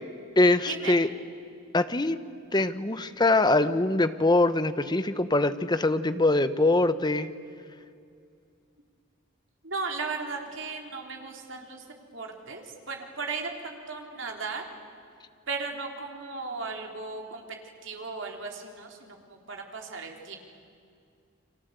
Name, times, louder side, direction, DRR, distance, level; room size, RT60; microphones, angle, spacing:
voice 1, 0.4-1.1 1.7-2.2 2.5-7.3, left 2 dB, 20° left, 12 dB, 1.0 m, -23 dB
voice 2, 9.6-11.8 12.1-14.6 15.5-17.4 17.8-20.4, right 4 dB, 65° right, 2 dB, 3.7 m, -36 dB
30.0 x 23.5 x 8.2 m, 2.3 s
head